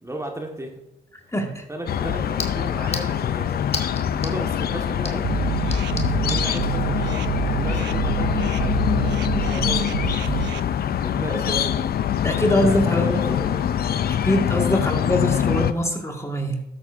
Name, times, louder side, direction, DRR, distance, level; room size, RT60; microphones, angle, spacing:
voice 1, 0.0-0.8 1.7-3.7 4.0-5.3 5.9-10.3 11.0-11.8 12.5-13.6, right 1 dB, 15° right, 1 dB, 1.6 m, -34 dB
sound 1, 1.2-6.5, left 3 dB, 35° left, 1.5 m, -37 dB
voice 2, 1.3-1.7 12.2-13.4 14.2-16.6, left 1 dB, 15° left, 2 dB, 1.8 m, -23 dB
sound 2, 1.9-15.7, left 9 dB, 60° left, 0.5 m, -24 dB
sound 3, 5.2-10.6, right 13 dB, 80° right, 0.4 m, -27 dB
13.0 x 7.6 x 2.6 m, 0.87 s
supercardioid pair, 45°, 18 cm